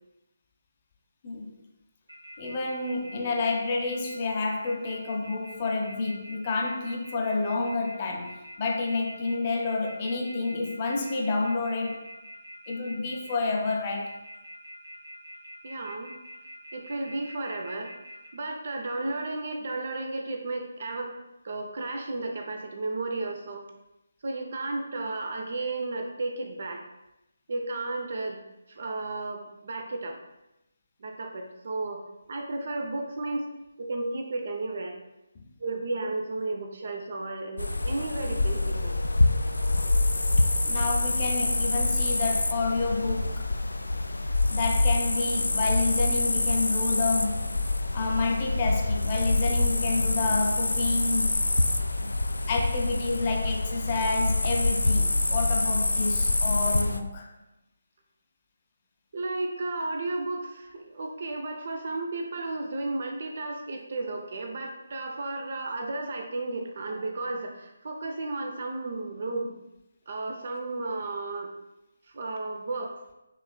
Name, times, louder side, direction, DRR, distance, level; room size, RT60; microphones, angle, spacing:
voice 1, 1.2-1.6 2.4-12.0 12.7-14.2 35.3-35.5 40.7-43.5 44.5-47.6 47.9-51.3 52.0-52.1 52.5-57.3, left 3 dB, 30° left, 1 dB, 0.6 m, -29 dB
sound 1, 2.1-18.3, equal, 70° right, 1.3 m, -45 dB
voice 2, 15.6-16.1 16.7-17.9 18.3-21.1 21.4-23.6 24.2-26.8 27.5-28.4 28.7-30.2 31.0-32.0 32.3-33.5 33.8-34.9 35.6-39.0 59.1-69.6 70.1-71.5 72.1-72.9, right 2 dB, 45° right, 3 dB, 0.6 m, -33 dB
sound 2, 37.6-57.0, left 2 dB, 70° left, 0.3 m, -26 dB
5.5 x 3.2 x 2.3 m, 0.92 s
figure-of-eight pair, 150°, 0 cm